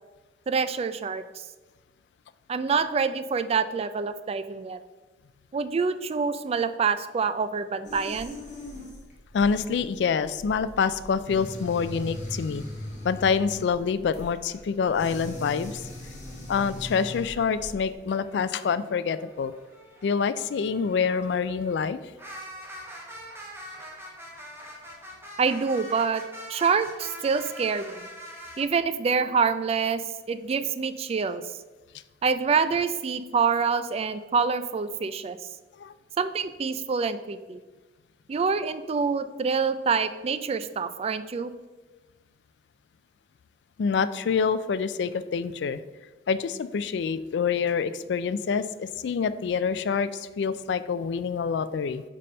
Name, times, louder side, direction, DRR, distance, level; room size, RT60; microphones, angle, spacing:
voice 1, 0.5-1.2 2.5-4.8 5.5-8.4 25.4-26.2 26.5-28.1 28.6-30.0 30.3-31.4 32.2-35.4 36.2-37.6 38.3-41.5, right 5 dB, 35° right, 12 dB, 0.3 m, -26 dB
sound 1, 7.8-17.9, left 1 dB, 45° left, 1.7 m, -40 dB
voice 2, 9.3-12.6 13.0-15.8 16.5-19.5 20.0-22.0 35.8-35.9 43.8-45.8 46.3-52.0, left 6 dB, 70° left, 14 dB, 0.3 m, -26 dB
sound 2, 14.8-17.7 18.1-28.6, equal, 15° right, 1.3 m, -45 dB
5.3 x 4.1 x 5.4 m, 1.2 s
head